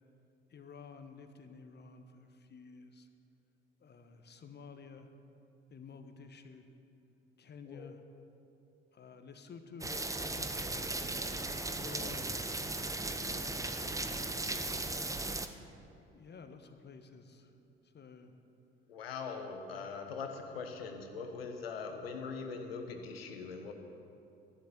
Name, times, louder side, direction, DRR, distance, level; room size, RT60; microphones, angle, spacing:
voice 1, 0.5-3.1 3.8-5.1 5.7-6.7 7.4-8.0 8.9-11.0 11.8-12.3 13.1-14.4 15.9-17.5 17.9-18.4, left 5 dB, 35° left, 7 dB, 1.4 m, -52 dB
sound 1, 9.8-15.5, right 2 dB, 10° right, 0.9 m, -37 dB
voice 2, 18.9-23.7, left 5 dB, 80° left, 5 dB, 1.3 m, -41 dB
14.5 x 11.5 x 6.9 m, 2.7 s
figure-of-eight pair, 50°, 30 cm